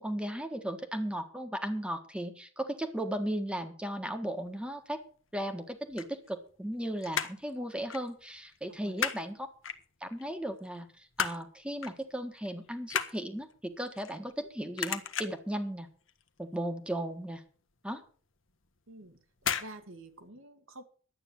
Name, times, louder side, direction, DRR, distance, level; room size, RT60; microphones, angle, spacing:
voice 1, 0.0-5.0 5.3-9.5 10.0-15.9 16.4-17.4 17.8-18.0, right 1 dB, 5° right, 7 dB, 1.5 m, -36 dB
sound 1, 5.7-6.7 7.0-7.5 7.9-8.1 8.4-9.2 9.6-10.2 10.6-11.5 11.8-12.0 12.3-14.5 14.8-15.5 15.9-16.3 16.5-16.6 17.0-17.1 17.5-17.6 18.5-18.8 19.4-19.7 20.0-20.1, left 8 dB, 70° left, 1.2 m, -34 dB
voice 2, 8.7-9.0 18.9-19.2 19.4-20.8, right 1 dB, 75° right, 7 dB, 1.9 m, -49 dB
11.5 x 9.1 x 7.2 m, 0.43 s
head